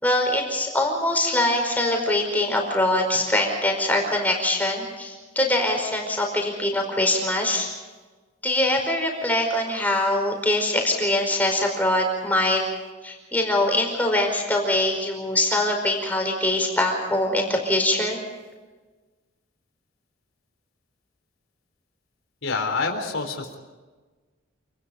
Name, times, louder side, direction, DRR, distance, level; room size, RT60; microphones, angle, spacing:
voice 1, 0.0-7.7 8.4-12.6 13.0-18.2, left 1 dB, 10° left, 1 dB, 5.0 m, -23 dB
voice 2, 22.4-23.6, left 4 dB, 80° left, 2 dB, 4.0 m, -27 dB
28.5 x 20.0 x 5.3 m, 1.3 s
head